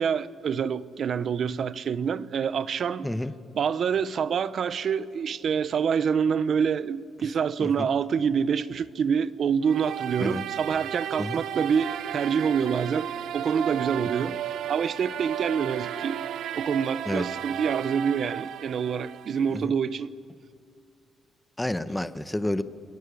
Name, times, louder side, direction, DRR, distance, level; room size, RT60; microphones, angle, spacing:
voice 1, 0.0-3.1 3.5-14.4 14.7-16.2 16.5-20.1, right 7 dB, 55° right, 0.8 m, -26 dB
sound 1, 9.6-19.6, right 10 dB, 80° right, 0.9 m, -34 dB
voice 2, 21.6-22.6, left 1 dB, 10° left, 1.0 m, -29 dB
28.5 x 22.0 x 8.3 m
cardioid pair, 115°, 0 cm